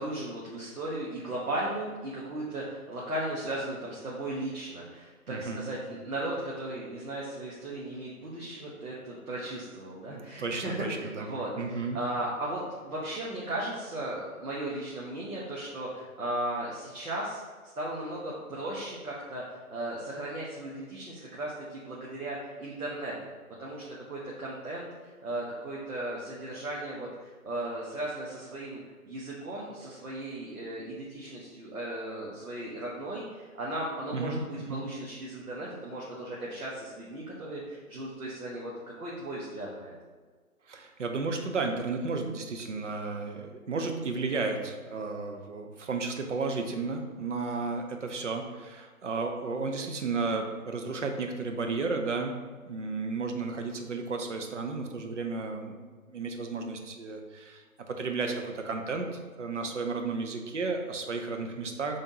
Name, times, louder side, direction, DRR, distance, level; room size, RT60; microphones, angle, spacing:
voice 1, 0.0-17.4 17.8-23.1 23.6-28.8 29.0-38.7 39.0-39.9, right 1 dB, 70° right, -5 dB, 1.1 m, -36 dB
voice 2, 5.3-5.7 10.1-11.3 11.6-12.0 34.1-34.4 34.7-34.8 40.7-52.4 52.7-55.8 56.1-62.0, right 4 dB, 55° right, 4 dB, 0.6 m, -33 dB
5.5 x 3.5 x 2.7 m, 1.5 s
figure-of-eight pair, 160°, 45 cm